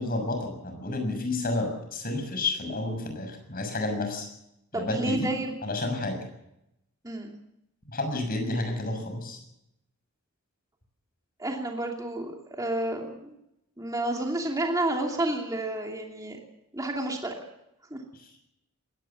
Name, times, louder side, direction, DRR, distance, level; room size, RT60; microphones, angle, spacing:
voice 1, 0.0-4.3 4.7-5.3 5.6-6.2 7.9-9.4, left 2 dB, 40° left, 6 dB, 6.6 m, -30 dB
voice 2, 4.7-5.5 7.0-7.3 11.4-13.3 13.8-16.4 16.7-17.4 17.9-18.0, right 1 dB, 15° right, 1 dB, 2.9 m, -30 dB
21.0 x 18.0 x 7.1 m, 0.83 s
head